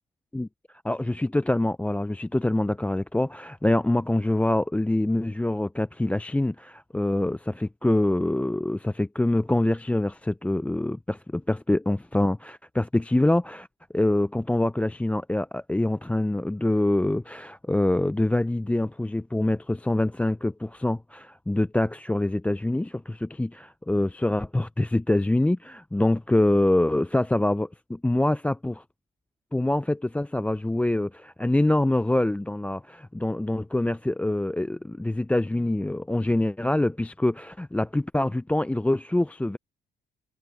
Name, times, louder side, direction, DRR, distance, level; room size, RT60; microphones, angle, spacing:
voice 1, 0.9-13.7 13.9-28.8 29.5-39.6, left 1 dB, 5° left, 0.4 m, -25 dB
cardioid pair, 90°, 20 cm